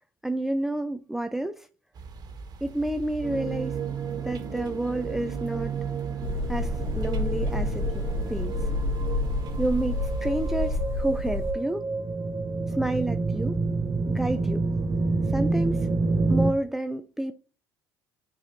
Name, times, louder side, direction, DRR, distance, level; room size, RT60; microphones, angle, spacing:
voice 1, 0.2-1.7 2.6-3.8 4.2-5.8 6.5-8.6 9.6-11.9 12.7-13.6 14.1-14.7 15.3-15.9 16.3-17.3, right 1 dB, 5° right, 0.4 m, -30 dB
sound 1, 1.9-10.8, right 4 dB, 50° right, 1.4 m, -42 dB
sound 2, 3.2-16.5, right 3 dB, 35° right, 0.9 m, -29 dB
sound 3, 6.2-11.5, left 2 dB, 65° left, 3.4 m, -29 dB
9.4 x 4.8 x 2.7 m
supercardioid pair, 95°, 9 cm